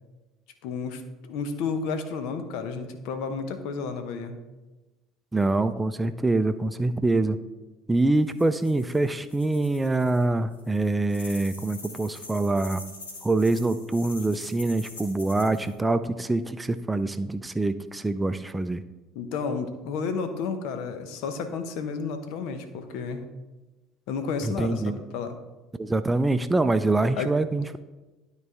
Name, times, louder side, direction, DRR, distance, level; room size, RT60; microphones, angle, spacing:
voice 1, 0.6-4.4 19.1-23.2 24.1-25.4 27.1-27.3, left 5 dB, 65° left, 9 dB, 0.8 m, -31 dB
voice 2, 5.3-7.4 7.9-12.8 13.2-18.8 24.4-25.0 25.8-27.8, right 2 dB, 15° right, 11 dB, 0.4 m, -25 dB
sound 1, 8.0-10.3 10.5-15.7, left 2 dB, 85° left, 1.4 m, -44 dB
12.0 x 4.1 x 3.5 m, 1.1 s
hypercardioid pair, 65°, 0 cm